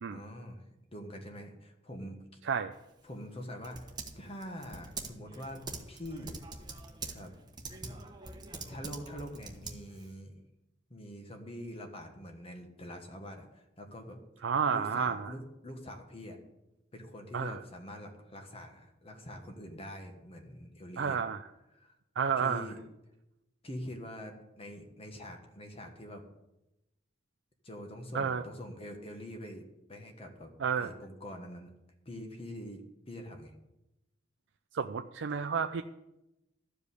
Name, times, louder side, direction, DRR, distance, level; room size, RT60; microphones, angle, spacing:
voice 1, 0.1-0.6 0.9-2.4 3.0-3.9 4.2-6.4 7.1-7.3 7.8-8.0 8.7-10.4 10.9-14.2 14.7-16.4 16.9-21.2 21.7-22.0 22.4-22.8 23.6-26.2 27.6-29.6 29.9-31.7 32.0-33.5, equal, 30° left, 4 dB, 1.3 m, -45 dB
voice 2, 2.4-2.8 14.4-15.3 17.3-17.6 21.0-21.4 22.2-22.7 28.1-28.4 30.6-30.9 34.7-35.8, right 6 dB, 70° right, 7 dB, 0.4 m, -31 dB
Typing, 2.7-10.2, right 3 dB, 25° right, 1.2 m, -45 dB
13.0 x 5.1 x 8.2 m, 0.92 s
head